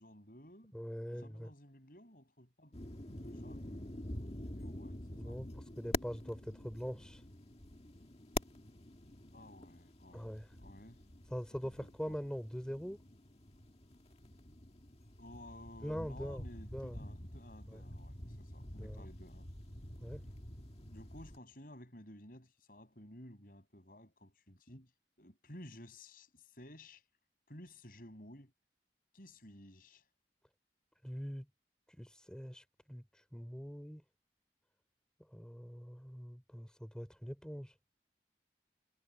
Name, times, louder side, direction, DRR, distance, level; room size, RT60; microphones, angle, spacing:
voice 1, 0.0-0.7 1.0-2.8 3.1-5.4 9.3-11.0 11.5-12.2 15.2-19.5 20.7-24.9 25.2-27.0 27.5-28.5 29.1-30.1, left 1 dB, 50° left, 7.5 m, -55 dB
voice 2, 0.7-1.5 5.1-5.5 5.8-7.2 10.1-10.5 11.3-13.0 15.8-16.4 16.7-17.0 17.7-17.8 18.7-19.1 20.0-20.2 31.0-31.5 32.0-33.0 33.3-34.0 35.3-37.7, equal, 5° left, 3.6 m, -43 dB
sound 1, 2.7-21.4, left 1 dB, 35° left, 1.9 m, -47 dB
head